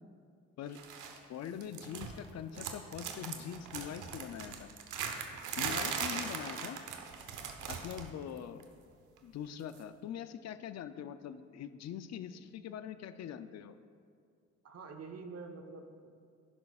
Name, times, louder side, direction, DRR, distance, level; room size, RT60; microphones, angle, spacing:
sound 1, 0.8-1.2 1.5-2.3 2.5-8.1 8.4-8.6 9.7-9.8, right 6 dB, 80° right, 0.9 m, -39 dB
voice 1, 1.3-4.7 5.6-6.8 7.7-8.6 9.2-13.7, left 9 dB, 60° left, 12 dB, 0.5 m, -43 dB
voice 2, 14.6-16.1, right 4 dB, 55° right, 4 dB, 1.0 m, -47 dB
11.0 x 10.5 x 2.4 m, 2.3 s
cardioid pair, 90°, 30 cm